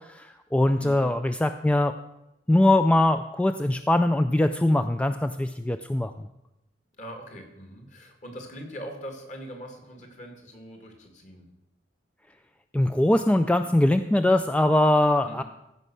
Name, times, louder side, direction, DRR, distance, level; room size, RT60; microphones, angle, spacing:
voice 1, 0.0-1.9 2.5-6.3 12.7-15.4, left 1 dB, 5° left, 8 dB, 0.3 m, -22 dB
voice 2, 0.8-1.2 7.0-11.4 15.2-15.4, equal, 40° left, 4 dB, 2.1 m, -42 dB
15.0 x 5.5 x 6.1 m, 0.89 s
head